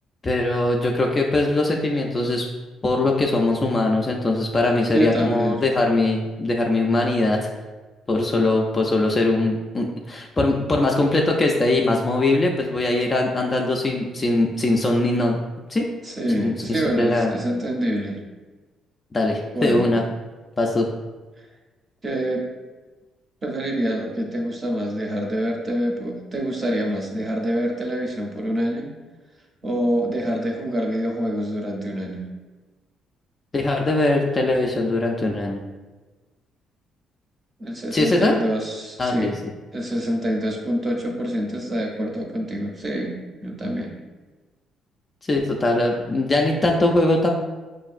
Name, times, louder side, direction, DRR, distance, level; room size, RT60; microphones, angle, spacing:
voice 1, 0.2-2.4 2.8-7.5 8.1-15.4 15.7-15.9 16.4-17.3 19.1-20.0 20.6-20.9 33.5-35.6 37.9-38.4 39.0-39.3 45.3-47.3, left 2 dB, 20° left, 0 dB, 0.3 m, -21 dB
voice 2, 4.9-5.6 16.0-18.2 19.5-19.8 22.0-22.5 23.4-28.9 29.6-32.3 37.6-39.3 39.7-43.1 43.4-43.9, equal, 20° right, 0 dB, 0.6 m, -26 dB
5.8 x 2.5 x 2.4 m, 1.3 s
cardioid pair, 160°, 0 cm